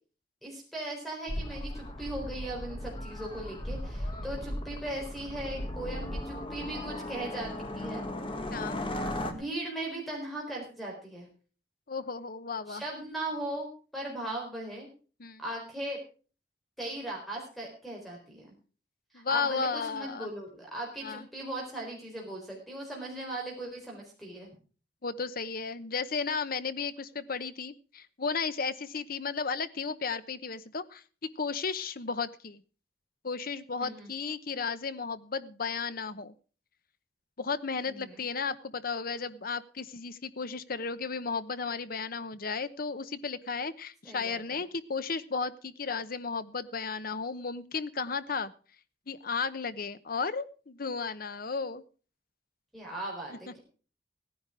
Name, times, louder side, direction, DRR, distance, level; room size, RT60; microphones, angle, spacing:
voice 1, 0.4-8.1 9.3-11.3 12.7-14.9 15.4-16.0 16.8-18.5 19.1-24.5 33.8-34.1 37.9-38.3 44.0-44.6 52.7-53.6, right 1 dB, ahead, -1 dB, 4.2 m, -38 dB
sound 1, 1.3-9.3, left 1 dB, 30° left, 1.8 m, -37 dB
voice 2, 8.5-8.8 11.9-12.8 15.2-15.4 19.1-20.3 21.0-21.2 25.0-31.0 31.4-32.6 33.2-36.3 37.4-48.5 49.1-51.8 53.3-53.6, left 5 dB, 55° left, 13 dB, 0.9 m, -34 dB
17.0 x 10.5 x 4.9 m, 0.39 s
head